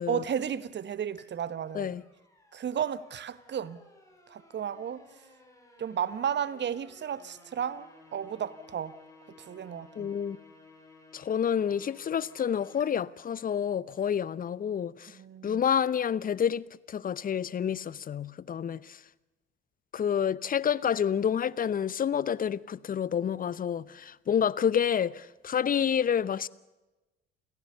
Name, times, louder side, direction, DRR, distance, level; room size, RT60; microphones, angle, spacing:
voice 1, 0.1-2.0 2.5-3.8 4.3-5.1 5.8-7.9 8.1-8.9 9.3-10.1 15.1-15.6, right 8 dB, 35° right, 1.3 m, -33 dB
sound 1, 1.2-12.9, left 2 dB, 10° left, 5.8 m, -57 dB
voice 2, 10.0-10.4 11.1-15.1 15.4-19.0 19.9-26.5, left 8 dB, 25° left, 0.8 m, -29 dB
29.0 x 15.5 x 6.8 m
figure-of-eight pair, 60°, 31 cm